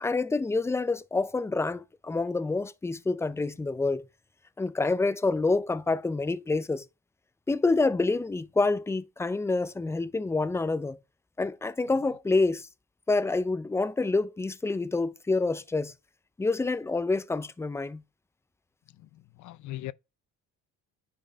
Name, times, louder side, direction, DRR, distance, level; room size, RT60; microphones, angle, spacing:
voice 1, 0.0-4.1 4.6-6.8 7.5-11.0 11.4-12.7 13.1-15.9 16.4-18.0, left 3 dB, 10° left, 0.4 m, -27 dB
voice 2, 19.0-19.9, left 16 dB, 65° left, 0.5 m, -40 dB
9.9 x 4.2 x 3.8 m
cardioid pair, 140°, 32 cm